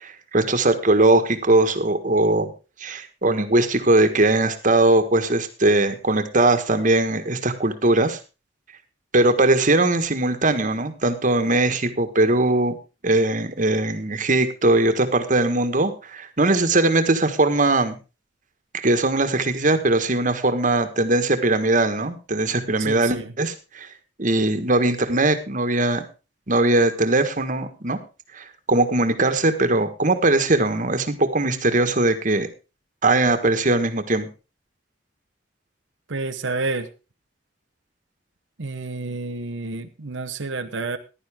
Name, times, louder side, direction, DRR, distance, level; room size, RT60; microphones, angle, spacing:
voice 1, 0.0-2.5 2.8-8.2 9.1-12.8 13.0-18.0 18.7-23.9 24.2-26.1 26.5-28.0 28.3-32.5 33.0-34.3, right 2 dB, 45° right, 8 dB, 1.5 m, -20 dB
voice 2, 22.8-23.3 36.1-36.9 38.6-41.0, right 3 dB, 85° right, 6 dB, 1.0 m, -29 dB
15.0 x 11.0 x 3.6 m, 0.31 s
head